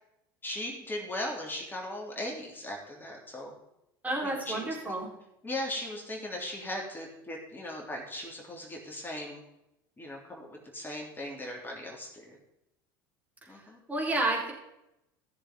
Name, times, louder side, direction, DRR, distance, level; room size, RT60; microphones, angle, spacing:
voice 1, 0.4-3.5 4.2-5.0 5.4-9.4 10.0-12.4 13.5-13.8, left 1 dB, 15° left, -1 dB, 3.1 m, -38 dB
voice 2, 4.0-5.1 13.4-14.5, right 2 dB, 15° right, -2 dB, 4.3 m, -31 dB
16.0 x 6.9 x 3.8 m, 0.86 s
hypercardioid pair, 80°, 12 cm